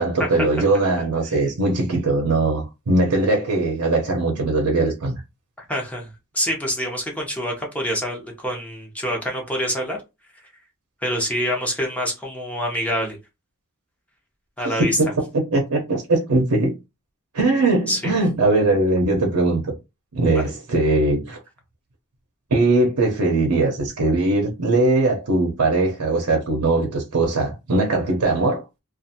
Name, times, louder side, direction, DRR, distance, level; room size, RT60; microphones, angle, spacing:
voice 1, 0.0-5.1 14.6-16.7 17.3-19.7 20.1-21.4 22.5-28.6, right 2 dB, 85° right, 0.7 m, -20 dB
voice 2, 5.7-10.0 11.0-13.2 14.6-15.0 17.9-18.1 20.3-20.4, equal, 5° left, 0.7 m, -26 dB
2.5 x 2.3 x 2.7 m
head